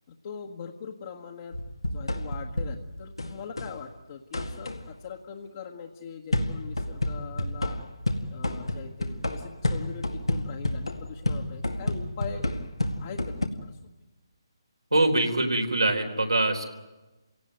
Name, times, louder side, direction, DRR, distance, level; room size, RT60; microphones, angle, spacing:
voice 1, 0.1-1.6 1.8-7.8 8.3-12.5 13.0-13.8, left 6 dB, 40° left, 0 dB, 1.5 m, -42 dB
sound 1, 1.5-3.8 4.3-4.9 6.3-13.5, left 1 dB, 85° left, 2.1 m, -30 dB
voice 2, 14.9-16.6, right 2 dB, 85° right, 3 dB, 4.1 m, -23 dB
28.5 x 17.5 x 9.2 m, 1.1 s
figure-of-eight pair, 145°, 3 cm